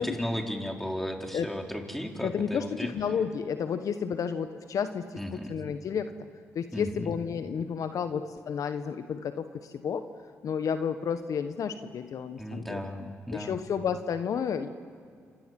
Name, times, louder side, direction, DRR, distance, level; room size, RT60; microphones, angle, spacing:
voice 1, 0.0-2.9 5.2-5.6 6.7-7.1 12.4-13.6, equal, 5° left, 2 dB, 4.5 m, -35 dB
voice 2, 2.2-6.1 6.5-10.0 10.4-12.8 13.3-14.7, left 7 dB, 60° left, 9 dB, 1.2 m, -31 dB
28.5 x 26.0 x 7.7 m, 2.1 s
hypercardioid pair, 50°, 6 cm